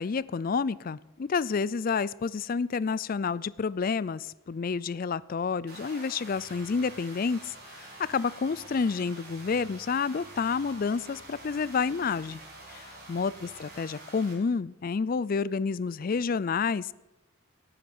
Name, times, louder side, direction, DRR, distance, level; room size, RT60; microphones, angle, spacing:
voice 1, 0.0-12.4 12.7-16.9, left 5 dB, 40° left, 20 dB, 0.4 m, -29 dB
sound 1, 5.7-14.3, right 2 dB, 45° right, 4.4 m, -47 dB
sound 2, 6.3-13.8, equal, 15° right, 3.0 m, -58 dB
18.0 x 10.0 x 6.1 m, 1.1 s
head